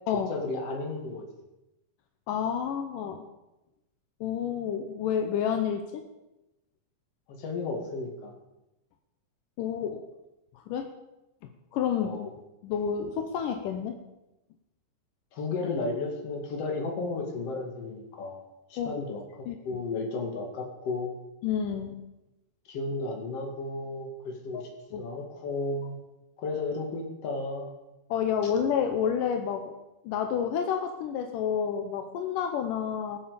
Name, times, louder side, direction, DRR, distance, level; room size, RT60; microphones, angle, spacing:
voice 1, 0.1-1.2 7.3-8.3 12.0-12.3 15.3-18.4 18.7-19.2 19.6-21.1 22.7-24.6 25.0-26.0 26.4-27.7, left 3 dB, 50° left, 1 dB, 2.9 m, -33 dB
voice 2, 2.3-3.3 4.2-6.0 9.6-10.0 10.6-10.9 11.7-12.2 12.6-14.0 18.8-18.9 19.5-19.8 21.4-22.0 24.5-24.7 24.9-25.1 28.1-29.8 30.0-33.2, left 8 dB, 80° left, 5 dB, 2.4 m, -29 dB
21.5 x 7.4 x 5.1 m, 0.95 s
omnidirectional pair, 3.9 m